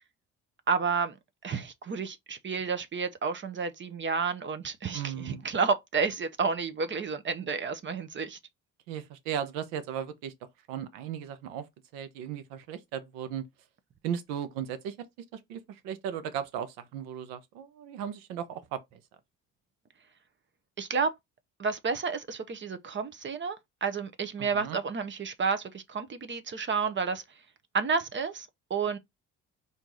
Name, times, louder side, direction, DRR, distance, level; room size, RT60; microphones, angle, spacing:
voice 1, 0.7-1.1 1.4-8.4 20.8-21.1 21.6-27.2 27.7-29.0, right 5 dB, 35° right, 0.8 m, -30 dB
voice 2, 4.9-5.4 8.9-11.7 11.9-13.4 14.0-15.0 15.3-19.0 24.4-24.8, right 9 dB, 80° right, 0.9 m, -36 dB
4.5 x 2.8 x 3.8 m
supercardioid pair, 70°, 33 cm